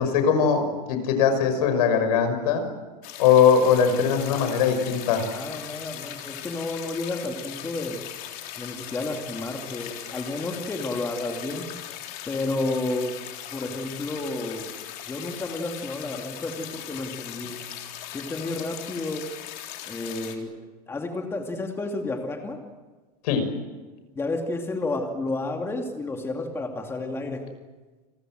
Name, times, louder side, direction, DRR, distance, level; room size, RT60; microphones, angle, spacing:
voice 1, 0.0-2.7 3.2-5.2 23.2-23.4, left 7 dB, 70° left, 8 dB, 6.0 m, -20 dB
sound 1, 3.0-20.4, left 11 dB, 45° left, 3.8 m, -39 dB
voice 2, 4.3-4.7 5.3-8.0 8.6-11.6 12.3-13.1 13.5-14.7 15.1-17.7 18.1-19.3 19.9-20.5 20.9-22.6 24.2-27.4, left 2 dB, 10° left, 3 dB, 2.6 m, -31 dB
29.5 x 21.5 x 7.7 m, 1.3 s
supercardioid pair, 150°, 20 cm